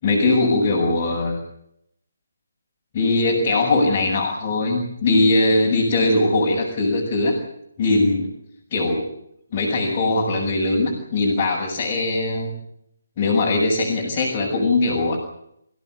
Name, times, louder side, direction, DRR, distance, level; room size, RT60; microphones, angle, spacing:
voice 1, 0.0-1.4 2.9-7.4 7.8-8.3 8.7-9.1 9.5-12.5 13.2-15.2, left 2 dB, 25° left, -4 dB, 6.9 m, -20 dB
27.5 x 16.5 x 9.7 m, 0.77 s
figure-of-eight pair, 145°, 0 cm